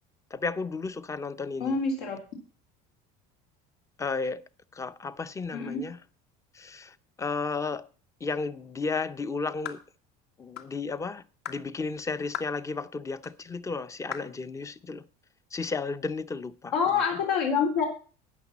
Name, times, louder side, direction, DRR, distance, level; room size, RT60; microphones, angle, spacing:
voice 1, 0.3-1.8 4.0-4.4 4.7-6.0 6.5-7.9 8.2-9.8 10.4-15.0 15.5-17.0, left 4 dB, 15° left, 0.7 m, -33 dB
voice 2, 1.6-2.2 5.5-5.8 16.7-17.8, left 6 dB, 80° left, 3.6 m, -26 dB
sound 1, 9.6-9.9 10.6-10.7 11.4-11.6 12.3-12.6 13.2-13.3 14.1-14.3, left 9 dB, 60° left, 1.9 m, -37 dB
13.5 x 9.4 x 4.1 m
cardioid pair, 135°, 20 cm